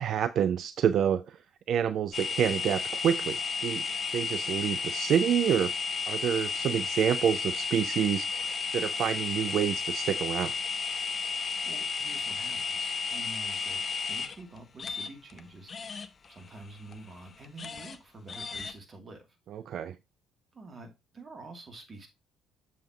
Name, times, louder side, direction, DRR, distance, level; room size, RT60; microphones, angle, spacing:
voice 1, 0.0-1.4 1.7-3.8 4.1-5.7 6.1-10.5 19.5-20.0, right 9 dB, 50° right, 0.4 m, -28 dB
sound 1, 2.1-15.4 15.7-18.0 18.3-18.7, left 4 dB, 40° left, 0.7 m, -33 dB
voice 2, 11.3-19.3 20.5-22.1, right 2 dB, 35° right, 2.4 m, -48 dB
7.2 x 7.2 x 2.8 m
figure-of-eight pair, 50°, 0 cm